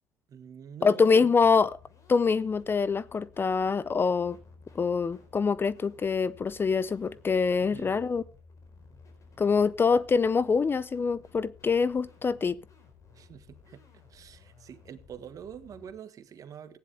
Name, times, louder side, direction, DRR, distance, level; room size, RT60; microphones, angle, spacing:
voice 1, 0.3-1.3 7.6-8.0 13.1-16.8, right 8 dB, 50° right, 1.5 m, -46 dB
voice 2, 0.8-1.7 2.1-4.4 4.7-8.2 9.4-12.6, left 5 dB, 30° left, 0.6 m, -25 dB
sound 1, 1.4-15.9, left 5 dB, 45° left, 4.3 m, -55 dB
15.5 x 10.0 x 3.4 m
supercardioid pair, 80°, 7 cm